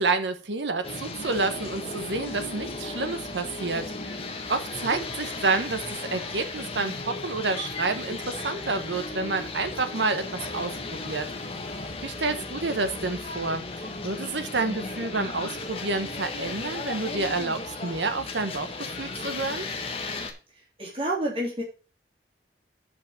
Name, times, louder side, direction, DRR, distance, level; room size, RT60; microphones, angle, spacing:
voice 1, 0.0-3.9 4.5-5.8 6.1-11.3 12.0-18.7 19.0-19.7, right 3 dB, 90° right, 1.1 m, -29 dB
sound 1, 0.8-20.3, left 3 dB, 35° left, 1.4 m, -35 dB
voice 2, 20.8-21.6, right 1 dB, 30° right, 3.0 m, -29 dB
6.7 x 5.7 x 7.3 m
head